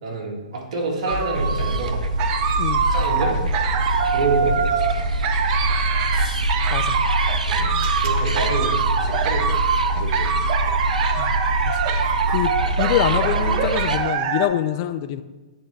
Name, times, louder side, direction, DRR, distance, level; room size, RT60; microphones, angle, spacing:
voice 1, 0.0-2.0 2.9-3.4 4.1-5.0 7.5-7.7 8.0-9.5 10.0-10.3, right 3 dB, 55° right, -1 dB, 1.5 m, -27 dB
sound 1, 1.1-14.5, right 6 dB, 40° right, 0.6 m, -24 dB
sound 2, 1.3-14.0, right 1 dB, 80° right, 0.5 m, -24 dB
voice 2, 6.2-7.0 11.2-11.3 11.7-11.8 12.3-15.2, left 12 dB, 40° left, 11 dB, 0.4 m, -25 dB
9.5 x 3.8 x 3.4 m, 1.2 s
figure-of-eight pair, 115°, 4 cm